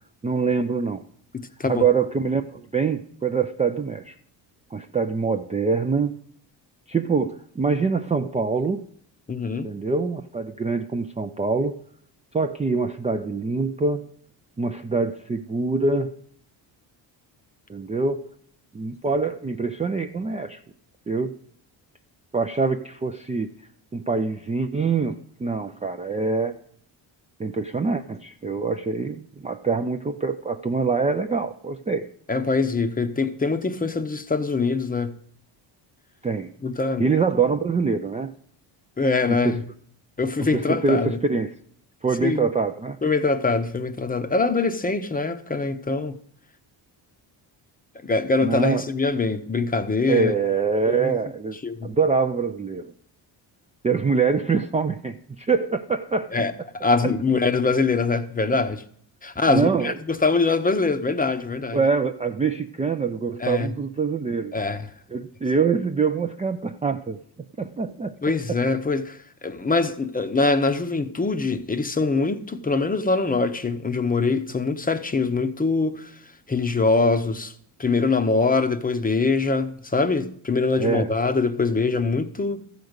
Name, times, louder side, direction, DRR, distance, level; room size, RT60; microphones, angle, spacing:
voice 1, 0.2-1.0 1.7-4.2 4.7-6.2 6.9-8.8 9.6-11.8 12.3-14.1 14.6-16.1 17.7-18.2 18.7-20.6 21.1-21.3 22.3-23.5 23.9-26.6 27.4-32.1 36.2-36.5 37.0-38.3 39.3-39.6 40.4-41.5 42.0-43.0 48.4-48.8 50.1-52.9 53.8-56.3 57.0-57.1 59.5-60.0 61.7-64.5 65.1-67.2 67.6-68.1 68.5-68.6 80.8-81.1, right 4 dB, 15° right, 0.4 m, -24 dB
voice 2, 1.3-1.8 9.3-9.7 32.3-35.1 36.6-37.0 39.0-39.6 40.2-41.2 42.2-42.5 43.0-46.2 48.0-50.3 50.9-51.2 51.6-51.9 56.3-58.8 59.2-61.8 63.4-63.7 64.5-64.8 68.2-69.2 69.4-76.1 76.5-77.5 77.8-82.6, left 3 dB, 20° left, 0.7 m, -23 dB
13.5 x 5.2 x 8.0 m
cardioid pair, 95°, 47 cm